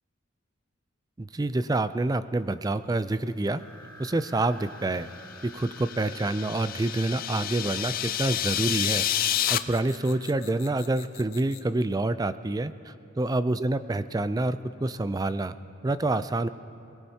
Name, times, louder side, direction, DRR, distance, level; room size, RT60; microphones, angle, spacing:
voice 1, 1.2-3.6 4.0-5.1 5.4-9.1 9.5-15.5 15.8-16.5, right 2 dB, 20° right, 13 dB, 0.4 m, -27 dB
sound 1, 3.6-10.6, left 1 dB, 15° left, 1.3 m, -51 dB
sound 2, 5.4-9.6, left 11 dB, 45° left, 0.4 m, -29 dB
sound 3, 7.2-11.8, left 12 dB, 60° left, 0.8 m, -48 dB
28.0 x 18.0 x 2.8 m, 2.8 s
head